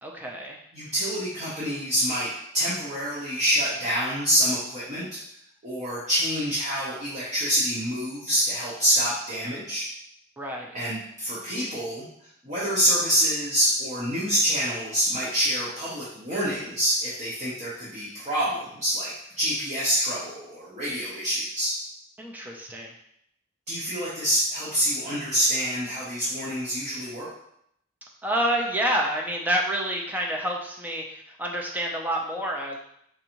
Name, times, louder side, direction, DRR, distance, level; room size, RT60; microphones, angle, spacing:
voice 1, 0.0-0.6 10.4-10.8 22.2-22.9 28.2-32.8, right 1 dB, 10° right, -1 dB, 0.5 m, -28 dB
voice 2, 0.7-5.1 5.6-9.9 10.7-12.1 12.4-19.1 19.4-21.7 23.7-27.3, equal, 35° right, -9 dB, 0.8 m, -26 dB
4.6 x 2.6 x 2.9 m, 0.73 s
head